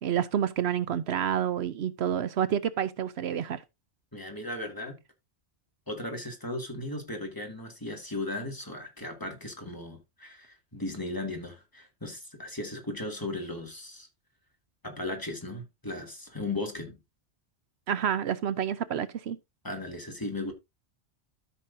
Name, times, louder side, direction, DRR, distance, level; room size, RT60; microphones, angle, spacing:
voice 1, 0.0-3.6 17.9-19.4, right 9 dB, 75° right, 0.9 m, -29 dB
voice 2, 4.1-5.0 5.9-14.1 14.8-17.0 19.6-20.5, left 2 dB, 20° left, 2.3 m, -36 dB
13.0 x 6.2 x 2.6 m
omnidirectional pair, 1.1 m